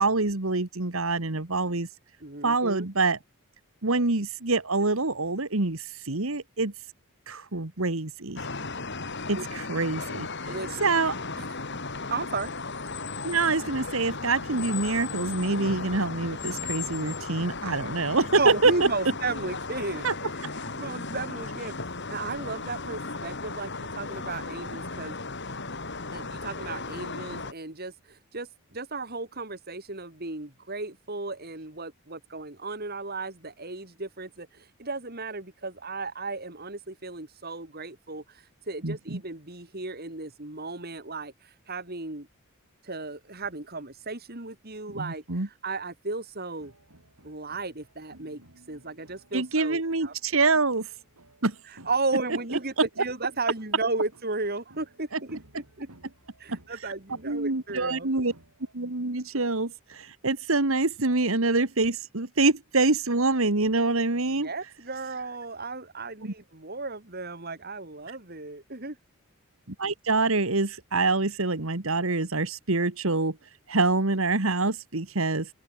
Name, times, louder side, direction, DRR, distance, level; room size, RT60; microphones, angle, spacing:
voice 1, 0.0-1.9 2.4-3.2 3.8-6.7 7.3-8.4 9.3-10.5 10.8-11.4 13.2-18.7 20.0-20.1 38.8-39.2 44.9-45.5 49.3-50.9 51.4-51.5 52.5-52.6 55.1-55.2 56.5-56.6 57.2-58.3 58.7-64.5 66.2-66.3 69.7-73.4 73.7-75.5, right 3 dB, 65° right, 1.8 m, -26 dB
voice 2, 2.2-2.9 9.3-9.4 10.5-11.1 11.4-11.6 12.1-12.5 18.3-25.2 26.1-42.3 42.8-46.7 47.2-48.4 48.7-50.4 51.7-55.9 56.4-58.1 64.3-69.0, right 3 dB, 45° right, 3.3 m, -35 dB
sound 1, 8.3-27.5, left 3 dB, 50° left, 4.1 m, -36 dB
sound 2, 46.6-58.7, right 1 dB, 90° right, 6.8 m, -56 dB
open air
head